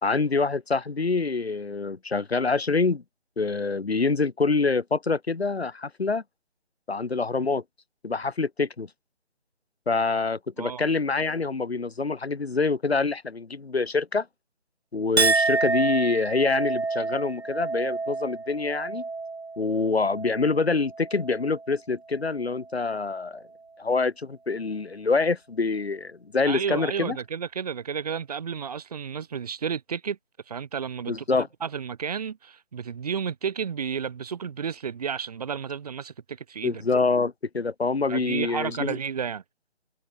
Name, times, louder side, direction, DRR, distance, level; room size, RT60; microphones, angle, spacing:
voice 1, 0.0-3.0 3.4-6.2 6.9-7.6 8.0-8.9 9.9-14.3 14.9-19.0 19.6-23.4 23.8-27.2 31.1-31.5 36.6-39.0, left 4 dB, 65° left, 1.8 m, -26 dB
Chink clink, 15.2-21.7 22.1-22.7, right 3 dB, 65° right, 2.3 m, -29 dB
voice 2, 26.5-30.2 30.5-31.2 31.6-36.8 38.1-39.4, right 7 dB, 35° right, 3.9 m, -32 dB
figure-of-eight pair, 155°, 34 cm